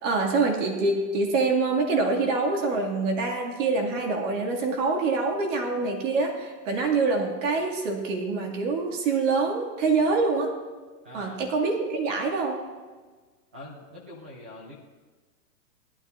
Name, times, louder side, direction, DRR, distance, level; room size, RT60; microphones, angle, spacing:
voice 1, 0.0-10.5 11.1-12.6, right 3 dB, 50° right, 1 dB, 2.5 m, -25 dB
voice 2, 11.0-11.4 13.5-14.7, left 1 dB, 10° right, -3 dB, 0.3 m, -43 dB
19.0 x 12.0 x 2.6 m, 1.4 s
hypercardioid pair, 155°, 49 cm